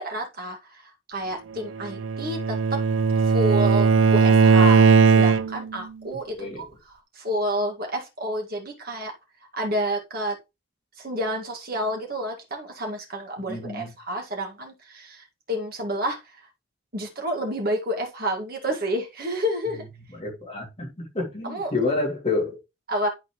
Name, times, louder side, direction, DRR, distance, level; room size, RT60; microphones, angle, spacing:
voice 1, 0.0-2.8 3.3-9.1 9.5-10.4 11.0-16.5 16.9-19.8 21.4-21.7 22.9-23.1, equal, 45° right, 1.9 m, -30 dB
Bowed string instrument, 1.8-5.8, right 5 dB, 65° right, 0.4 m, -18 dB
voice 2, 13.5-13.9 20.1-22.6, left 3 dB, 30° left, 2.5 m, -28 dB
11.0 x 4.2 x 3.1 m
head